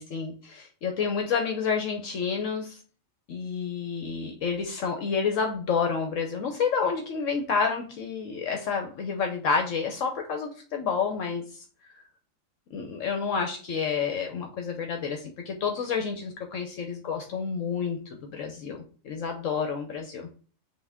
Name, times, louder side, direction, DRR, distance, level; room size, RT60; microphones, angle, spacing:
voice 1, 0.0-2.8 3.3-11.5 12.7-20.3, left 5 dB, 75° left, 3 dB, 1.1 m, -29 dB
5.7 x 2.5 x 3.4 m, 0.39 s
omnidirectional pair, 1.4 m